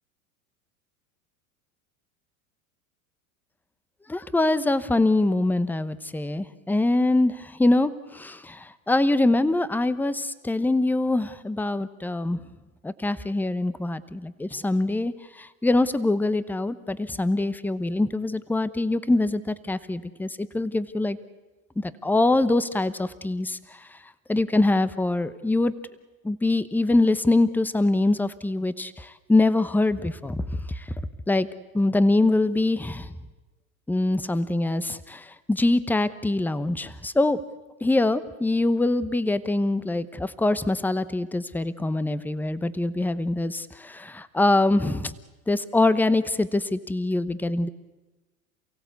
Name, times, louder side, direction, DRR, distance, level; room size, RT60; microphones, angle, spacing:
voice 1, 4.1-12.4 12.8-21.2 21.8-24.0 24.3-25.7 26.2-30.9 31.3-31.5 31.7-33.1 33.9-37.4 37.8-45.1 45.5-47.7, left 2 dB, 5° left, 15 dB, 0.9 m, -24 dB
29.0 x 16.5 x 8.2 m, 1.2 s
hypercardioid pair, 100°, 42 cm